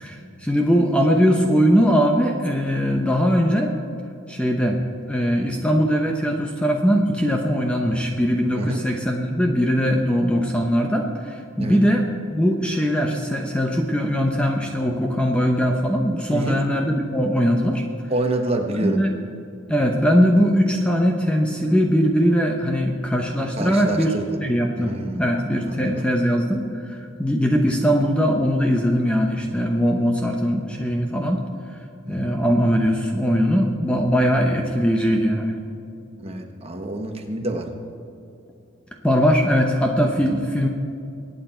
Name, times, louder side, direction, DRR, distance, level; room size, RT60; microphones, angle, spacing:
voice 1, 0.0-3.7 4.3-4.8 5.1-17.8 18.8-19.1 19.7-24.1 24.4-31.4 32.1-35.6 37.4-37.6 39.0-40.7, equal, 5° left, 2 dB, 0.8 m, -20 dB
voice 2, 16.3-16.6 18.1-19.0 23.6-24.4 24.7-25.2 25.7-26.0 32.1-32.3 36.2-37.7 40.2-40.3, right 2 dB, 30° right, 3 dB, 1.3 m, -27 dB
23.5 x 9.1 x 4.4 m, 2.6 s
head